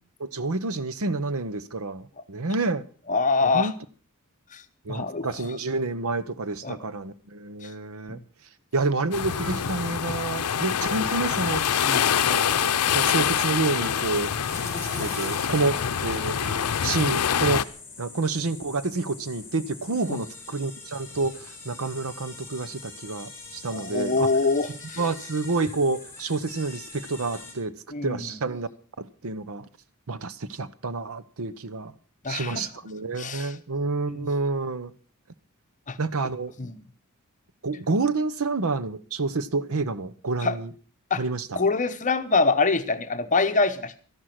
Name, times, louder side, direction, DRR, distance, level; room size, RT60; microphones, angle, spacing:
voice 1, 0.2-2.8 3.4-3.7 4.9-8.2 8.7-11.6 12.2-14.3 15.0-16.4 16.8-17.6 18.0-24.3 25.0-27.7 28.0-28.7 29.0-29.6 30.1-31.9 32.3-34.9 36.0-36.5 37.6-40.7 41.2-41.6, right 3 dB, 70° right, 0.9 m, -28 dB
voice 2, 3.1-3.7 4.5-4.6 4.9-5.3 6.6-6.8 8.1-8.2 11.8-12.1 20.1-20.2 23.7-25.0 27.9-28.4 32.2-32.7 33.2-33.5 34.1-34.3 35.9-36.0 36.6-36.8 40.4-40.6 41.1-41.2 41.6-43.9, left 4 dB, 35° left, 1.0 m, -25 dB
sound 1, 9.1-17.6, left 8 dB, 85° left, 0.6 m, -25 dB
sound 2, 9.3-9.9 10.8-11.3 12.3-12.8 13.7-14.2 15.0-15.6 16.3-16.9 17.6-17.7, right 3 dB, 85° right, 4.7 m, -42 dB
sound 3, 11.3-27.5, left 3 dB, 10° left, 6.2 m, -42 dB
13.0 x 11.5 x 6.0 m
head